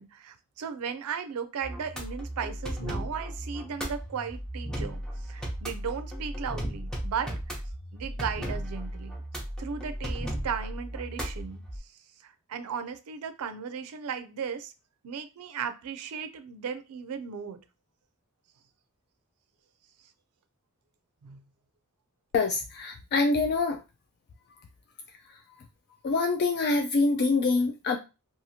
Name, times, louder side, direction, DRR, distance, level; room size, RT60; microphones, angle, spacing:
voice 1, 0.0-7.6 7.9-9.1 9.6-11.6 12.2-14.7 15.0-17.6 21.2-21.4, right 6 dB, 75° right, 9 dB, 0.4 m, -36 dB
sound 1, 1.6-11.8, equal, 5° left, 0.7 m, -35 dB
voice 2, 22.3-23.8 26.0-28.0, left 3 dB, 50° left, 5 dB, 0.3 m, -25 dB
2.8 x 2.4 x 2.7 m, 0.28 s
head